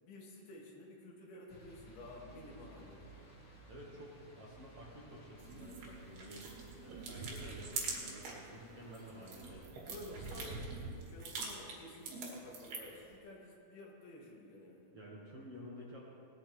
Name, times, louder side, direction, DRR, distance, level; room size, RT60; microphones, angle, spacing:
voice 1, 0.0-3.2 9.9-14.9, left 1 dB, 75° left, -3 dB, 3.8 m, -52 dB
sound 1, 1.5-9.7, right 1 dB, 25° left, 1.8 m, -57 dB
voice 2, 3.7-10.5 14.9-16.0, equal, 50° right, -5 dB, 2.0 m, -52 dB
sound 2, 5.4-8.5 8.8-13.0, right 4 dB, 80° right, 3.9 m, -44 dB
20.0 x 12.0 x 3.3 m, 2.5 s
omnidirectional pair, 4.4 m